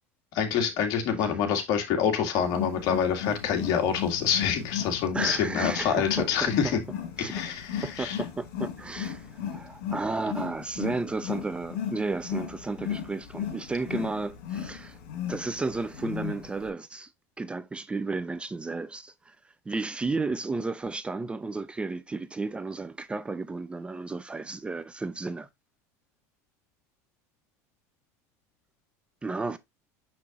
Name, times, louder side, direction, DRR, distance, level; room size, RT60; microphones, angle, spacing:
voice 1, 0.3-6.8 7.2-8.2, left 7 dB, 55° left, 2.0 m, -26 dB
Wild animals, 2.4-16.7, left 9 dB, 75° left, 3.3 m, -36 dB
voice 2, 5.1-6.8 7.2-7.3 7.8-15.0 15.3-17.1 17.4-25.5 29.2-29.6, right 3 dB, 15° right, 0.5 m, -33 dB
7.0 x 6.0 x 2.4 m
supercardioid pair, 115°, 8 cm